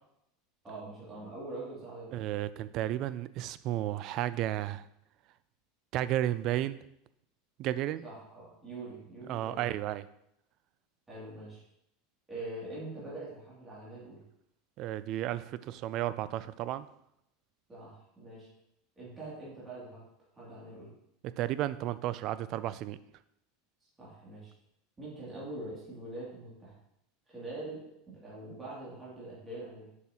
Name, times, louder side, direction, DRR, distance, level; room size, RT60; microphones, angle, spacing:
voice 1, 0.6-2.3 8.0-9.8 11.1-11.6 12.3-14.2 17.7-18.5 19.0-20.0 20.3-20.9 24.0-24.5 25.0-26.8 27.3-29.9, right 2 dB, 15° right, -8 dB, 2.5 m, -44 dB
voice 2, 2.1-4.8 5.9-6.8 7.6-8.0 9.3-10.0 14.8-16.9 21.4-23.0, right 13 dB, 45° right, 16 dB, 0.3 m, -33 dB
6.9 x 6.5 x 2.8 m, 0.78 s
supercardioid pair, 145°, 0 cm